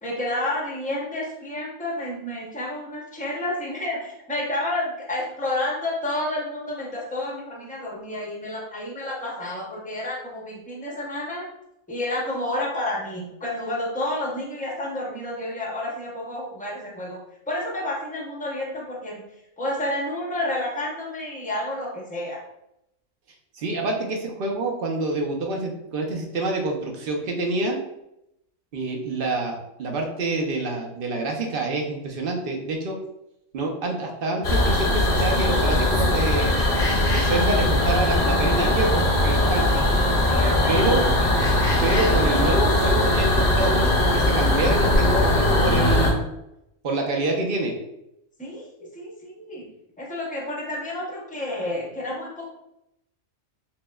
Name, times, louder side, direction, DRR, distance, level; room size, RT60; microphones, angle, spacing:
voice 1, 0.0-11.4 11.9-17.2 17.5-19.2 19.6-22.4 39.7-39.9 40.3-41.3 48.4-49.6 50.0-52.5, left 1 dB, 10° left, -3 dB, 0.5 m, -30 dB
voice 2, 23.5-27.8 28.7-33.0 33.5-36.6 37.1-39.7 40.7-41.0 41.8-46.2 46.8-47.7, right 2 dB, 55° right, 1 dB, 0.7 m, -27 dB
sound 1, 34.4-46.1, left 1 dB, 45° left, 0.7 m, -20 dB
6.0 x 2.1 x 2.3 m, 0.83 s
omnidirectional pair, 1.4 m